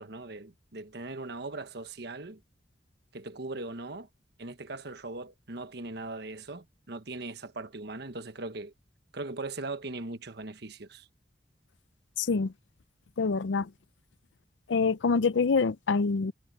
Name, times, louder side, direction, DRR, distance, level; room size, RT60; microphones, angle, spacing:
voice 1, 0.0-2.4 3.1-4.1 4.4-8.7 9.1-11.1, right 2 dB, 65° right, 1.3 m, -39 dB
voice 2, 12.2-12.5 13.2-13.7 14.7-16.3, left 4 dB, 85° left, 0.5 m, -26 dB
head